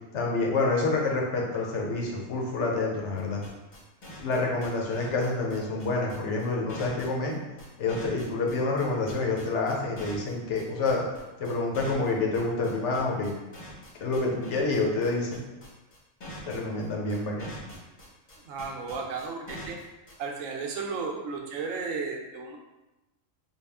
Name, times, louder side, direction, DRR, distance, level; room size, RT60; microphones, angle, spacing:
voice 1, 0.1-3.4 4.2-7.4 7.8-11.1 11.4-13.4 14.0-15.4 16.5-17.5, left 3 dB, 70° left, -1 dB, 1.0 m, -28 dB
sound 1, 3.2-20.1, left 1 dB, 40° left, 0.9 m, -44 dB
voice 2, 18.4-19.8 20.2-22.6, right 4 dB, 85° right, 1 dB, 1.0 m, -34 dB
3.5 x 2.3 x 3.4 m, 1.0 s
omnidirectional pair, 1.3 m